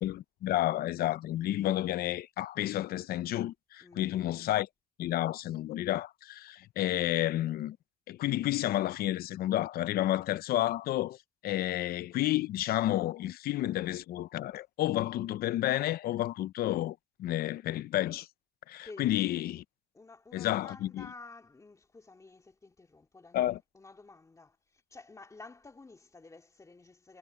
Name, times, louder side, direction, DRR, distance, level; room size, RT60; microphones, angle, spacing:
voice 1, 0.0-4.7 5.0-7.8 8.1-11.2 11.4-18.3 18.7-19.6 20.3-21.1 23.3-23.6, left 14 dB, 65° left, 0.6 m, -31 dB
voice 2, 3.8-4.3 18.8-19.1 19.9-27.2, left 3 dB, 20° left, 2.4 m, -52 dB
cardioid pair, 110°, 17 cm